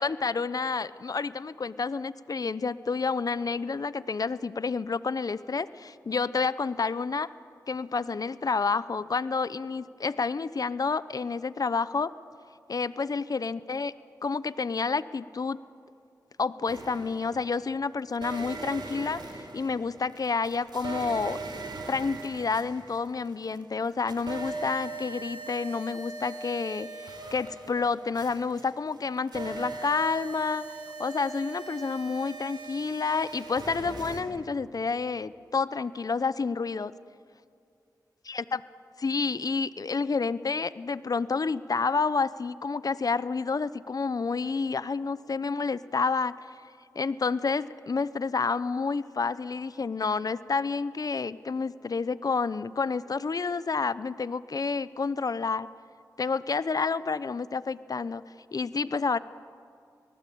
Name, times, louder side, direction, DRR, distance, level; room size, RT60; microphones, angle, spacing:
voice 1, 0.0-7.3 7.7-12.1 12.7-13.9 14.2-15.6 16.4-21.4 21.9-36.9 38.3-38.6 39.0-46.3 46.9-55.7 56.2-58.2 58.5-59.2, left 4 dB, 55° left, 16 dB, 0.8 m, -29 dB
sound 1, 16.7-17.6 18.1-23.6 23.8-34.2, right 3 dB, 75° right, 4.0 m, -40 dB
25.5 x 19.0 x 8.5 m, 2.3 s
cardioid pair, 45°, 7 cm